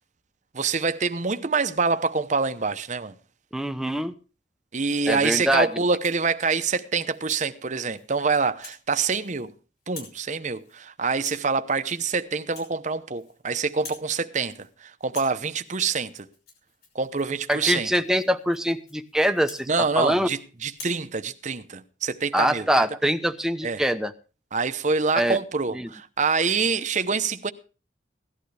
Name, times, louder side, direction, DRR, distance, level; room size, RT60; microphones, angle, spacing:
voice 1, 0.5-3.1 4.7-9.5 9.9-16.3 16.9-17.9 19.7-22.8 23.6-23.8 24.5-27.5, right 4 dB, 40° right, 0.8 m, -26 dB
voice 2, 3.5-4.1 5.1-5.7 17.5-19.7 20.0-20.3 22.3-24.1 25.2-25.4 25.7-25.9, equal, 5° right, 0.8 m, -23 dB
Rattle (instrument), 5.8-6.3 6.8-7.5 8.0-8.2 8.6-8.8 9.1-9.5 9.8-10.2 10.5-10.8 11.2-11.5 11.9-12.1 12.4-13.4 13.7-14.1 14.4-14.7 15.0-20.3 20.7-21.0, left 4 dB, 55° left, 5.5 m, -47 dB
17.5 x 11.5 x 3.4 m
head